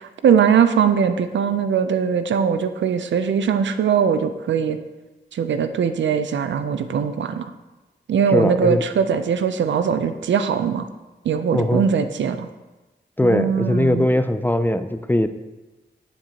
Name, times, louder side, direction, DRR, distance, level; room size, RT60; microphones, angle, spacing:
voice 1, 0.0-4.8 5.3-7.5 8.1-10.9 11.2-12.5 13.2-14.1, right 7 dB, 85° right, 10 dB, 0.4 m, -20 dB
voice 2, 8.3-8.8 11.5-11.8 13.2-15.3, left 1 dB, 10° left, 10 dB, 0.3 m, -20 dB
9.1 x 4.5 x 2.9 m, 1.1 s
cardioid pair, 65°, 19 cm